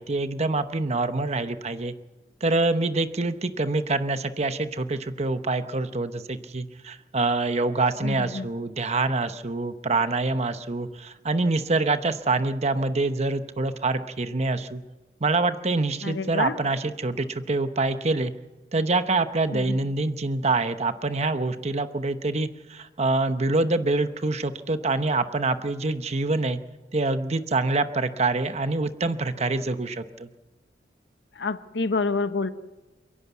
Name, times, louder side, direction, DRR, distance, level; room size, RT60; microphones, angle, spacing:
voice 1, 0.0-1.9 2.4-14.8 15.2-18.3 18.7-26.6 26.9-30.3, right 3 dB, 40° right, 10 dB, 0.9 m, -25 dB
voice 2, 8.0-8.5 16.0-16.6 19.5-19.8 31.4-32.5, left 3 dB, 85° left, 11 dB, 1.0 m, -28 dB
29.0 x 11.5 x 8.2 m, 1.2 s
head